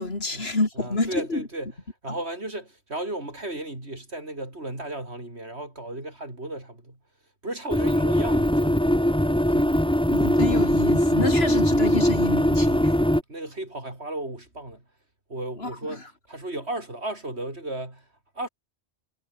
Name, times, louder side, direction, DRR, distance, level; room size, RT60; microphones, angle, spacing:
voice 1, 0.0-1.4 10.1-12.9 15.6-15.7, left 2 dB, 70° left, 3.8 m, -28 dB
voice 2, 0.7-1.7 2.0-7.0 7.4-8.9 9.5-9.7 12.7-14.8 15.3-18.1 18.3-18.5, right 1 dB, 90° right, 6.7 m, -35 dB
sound 1, 7.7-13.2, equal, 5° left, 1.8 m, -21 dB
omnidirectional pair, 1.1 m